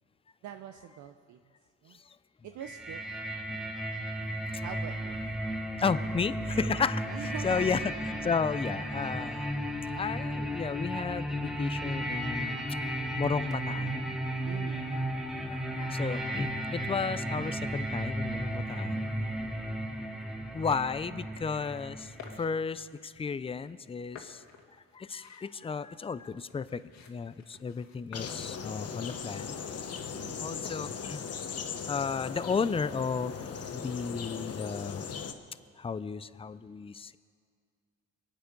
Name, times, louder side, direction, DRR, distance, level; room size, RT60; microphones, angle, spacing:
voice 1, 0.4-1.4 1.8-2.0 2.4-3.0 4.6-5.2 7.0-7.9 14.4-15.1 21.1-21.2 30.1-30.7, right 10 dB, 75° right, 7 dB, 0.7 m, -44 dB
sound 1, 2.6-22.4, right 1 dB, ahead, 1.4 m, -34 dB
voice 2, 5.8-7.8 8.1-9.5 10.0-12.8 13.2-14.1 15.5-19.1 20.5-24.4 24.9-26.8 27.1-29.6 30.4-31.2 31.9-35.1 35.8-37.2, left 5 dB, 20° left, 14 dB, 0.5 m, -33 dB
sound 2, 21.5-21.8 22.2-23.0 23.6-23.7 24.1-31.3, left 6 dB, 70° left, 1.8 m, -52 dB
sound 3, 28.1-35.3, left 6 dB, 55° left, 1.1 m, -38 dB
24.0 x 9.0 x 5.3 m, 2.1 s
cardioid pair, 90°, 30 cm